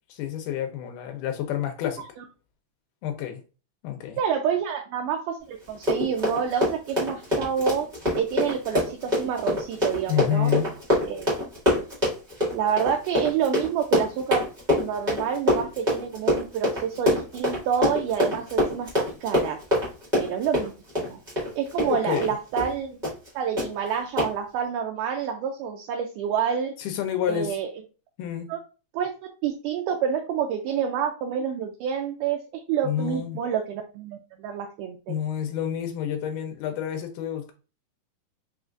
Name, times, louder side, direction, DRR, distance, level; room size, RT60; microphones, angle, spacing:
voice 1, 0.1-2.0 3.0-3.4 3.8-4.2 10.1-10.7 21.8-22.4 26.8-27.6 28.2-28.5 32.8-33.4 35.1-37.5, left 10 dB, 80° left, 2.0 m, -29 dB
voice 2, 4.2-7.9 8.2-10.5 11.1-11.3 12.5-14.4 14.8-19.6 20.2-20.7 21.0-21.2 21.6-23.0 23.4-26.7 27.3-27.7 28.5-28.6 28.9-29.1 29.4-35.1, right 8 dB, 80° right, 1.9 m, -28 dB
Run, 5.7-22.3 22.6-22.7 23.0-23.3 23.6-23.7 24.2-24.3, left 1 dB, 50° right, 0.5 m, -25 dB
5.6 x 2.4 x 2.4 m
omnidirectional pair, 4.0 m